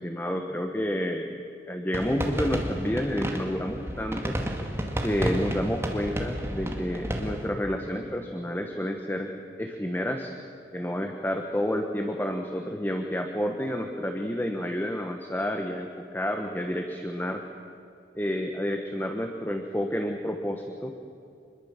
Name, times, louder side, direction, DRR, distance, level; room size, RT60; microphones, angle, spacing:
voice 1, 0.0-1.4 1.7-4.4 5.0-9.3 9.6-10.3 10.7-17.4 18.1-20.9, equal, 10° left, 4 dB, 1.2 m, -30 dB
sound 1, 1.9-7.5, equal, 15° right, 2.2 m, -31 dB
25.5 x 21.5 x 7.4 m, 2.6 s
head